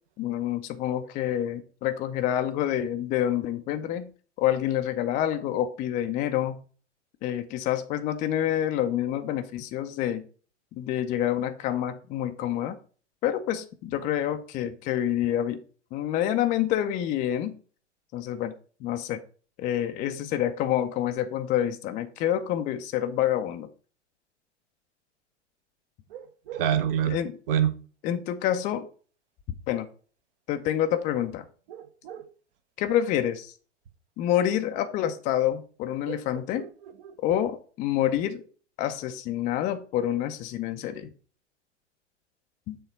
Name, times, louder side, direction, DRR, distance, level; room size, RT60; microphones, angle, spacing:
voice 1, 0.2-4.1 4.4-6.6 7.2-10.3 10.8-12.8 13.2-15.6 15.9-17.5 18.1-18.5 18.8-19.2 19.6-23.7 27.0-27.3 28.0-28.8 29.7-29.9 30.5-31.4 32.8-33.5 34.2-36.6 37.2-38.4 38.8-41.1 42.7-42.8, left 11 dB, 20° left, 7 dB, 0.5 m, -27 dB
voice 2, 26.1-27.2 27.5-27.7 31.7-32.2 36.1-36.2 36.6-36.7 37.0-37.1, right 9 dB, 50° right, 11 dB, 1.0 m, -27 dB
6.8 x 3.6 x 5.4 m, 0.40 s
figure-of-eight pair, 100°, 36 cm